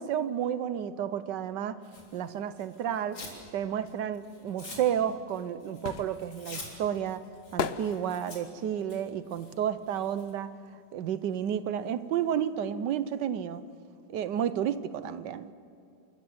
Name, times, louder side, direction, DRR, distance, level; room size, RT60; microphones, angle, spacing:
voice 1, 0.0-1.8 2.1-3.2 3.5-7.2 7.5-10.5 10.9-13.6 14.1-15.5, right 9 dB, 75° right, 14 dB, 1.4 m, -31 dB
Tearing, 1.8-3.4 3.8-10.3, left 2 dB, 80° left, 4.2 m, -48 dB
sound 1, 5.2-10.8 11.1-12.7 12.9-13.0, left 7 dB, 60° left, 0.6 m, -38 dB
29.0 x 13.5 x 7.9 m, 2.5 s
omnidirectional pair, 1.9 m